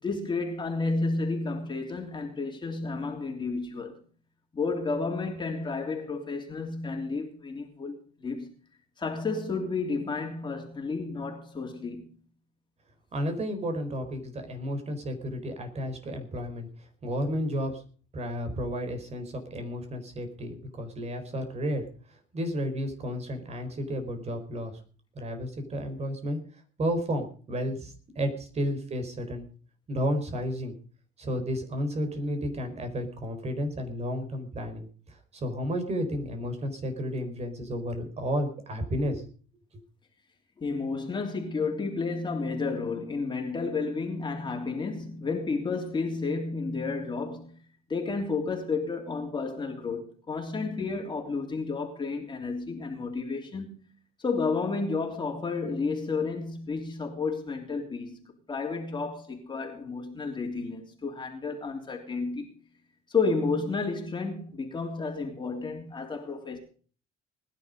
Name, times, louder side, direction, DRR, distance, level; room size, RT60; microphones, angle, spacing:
voice 1, 0.0-3.9 4.5-8.5 9.0-12.1 40.6-47.6 47.9-53.8 54.2-62.5 63.1-66.6, left 4 dB, 25° left, 3.3 m, -31 dB
voice 2, 13.1-16.7 17.0-17.8 18.1-21.8 22.3-24.7 25.1-26.4 26.8-29.5 29.9-30.7 31.2-39.3, equal, 40° right, 4.6 m, -32 dB
20.0 x 11.0 x 5.3 m
cardioid pair, 110°, 17 cm